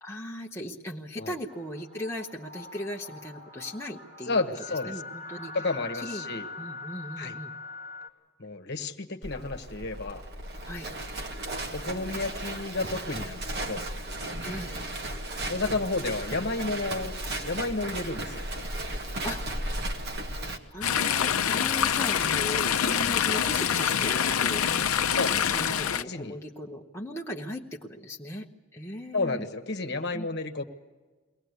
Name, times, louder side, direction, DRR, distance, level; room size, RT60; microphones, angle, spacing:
voice 1, 0.0-4.4 4.9-5.5 5.9-6.3 6.6-7.5 10.6-10.9 14.4-14.7 19.2-19.4 20.7-29.5 30.1-30.3, left 1 dB, 10° left, -1 dB, 1.0 m, -38 dB
sound 1, 1.5-8.1, left 3 dB, 30° right, 2.2 m, -42 dB
voice 2, 4.3-5.0 5.5-6.5 7.2-7.3 8.4-10.2 11.7-13.8 15.4-17.1 17.4-18.4 25.1-25.5 26.1-26.4 29.1-30.6, left 3 dB, 50° left, 6 dB, 1.3 m, -31 dB
Livestock farm animals working animals, 9.2-20.6, right 1 dB, 50° right, 1.7 m, -35 dB
Chatter / Stream, 20.8-26.0, left 8 dB, 80° left, 0.7 m, -25 dB
23.0 x 18.0 x 8.2 m, 1.3 s
head